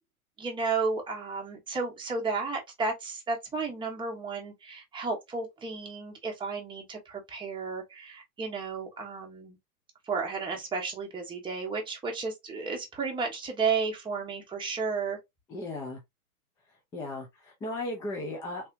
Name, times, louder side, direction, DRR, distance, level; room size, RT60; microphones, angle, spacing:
voice 1, 0.4-9.6 10.1-15.2, right 4 dB, 10° right, 1.1 m, -33 dB
voice 2, 15.5-16.0 16.9-18.7, left 2 dB, 10° left, 0.4 m, -36 dB
3.5 x 2.7 x 2.6 m
hypercardioid pair, 125°, 44 cm